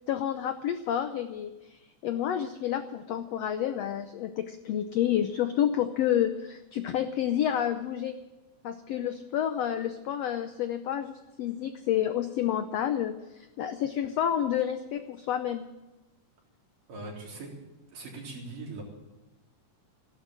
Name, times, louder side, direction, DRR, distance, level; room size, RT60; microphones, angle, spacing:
voice 1, 0.1-8.2 8.6-15.6, left 10 dB, 85° left, 9 dB, 1.4 m, -29 dB
voice 2, 16.9-17.5 17.9-18.8, right 3 dB, 70° right, -2 dB, 5.4 m, -40 dB
15.5 x 12.0 x 7.5 m, 1.1 s
omnidirectional pair, 3.9 m